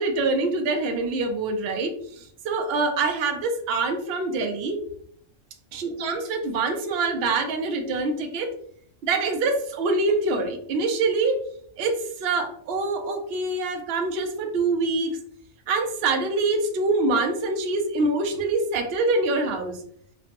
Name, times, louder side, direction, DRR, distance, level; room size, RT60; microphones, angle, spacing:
voice 1, 0.0-4.8 5.7-8.5 9.0-11.4 11.8-15.2 15.7-19.8, right 3 dB, 60° right, 5 dB, 0.7 m, -25 dB
3.1 x 2.0 x 2.8 m, 0.64 s
omnidirectional pair, 1.3 m